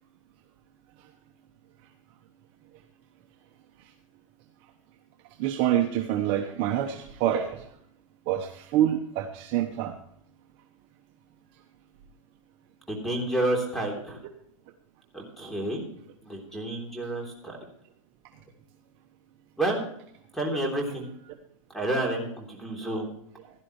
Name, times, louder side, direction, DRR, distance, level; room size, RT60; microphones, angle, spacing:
voice 1, 5.4-7.6 8.3-9.9, right 11 dB, 35° right, 4 dB, 1.1 m, -26 dB
voice 2, 12.9-14.2 15.1-15.8 16.2-17.6 19.6-19.8 20.3-21.1 21.7-23.1, right 1 dB, ahead, 1 dB, 3.3 m, -29 dB
16.5 x 11.5 x 3.2 m, 0.68 s
supercardioid pair, 160°, 17 cm